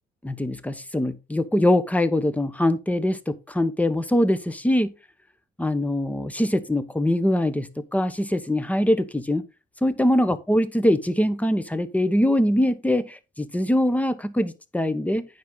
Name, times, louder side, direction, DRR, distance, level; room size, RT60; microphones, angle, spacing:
voice 1, 0.2-4.9 5.6-9.4 9.8-15.2, left 1 dB, 5° left, 1.2 m, -23 dB
9.3 x 6.1 x 3.8 m
cardioid pair, 90°, 20 cm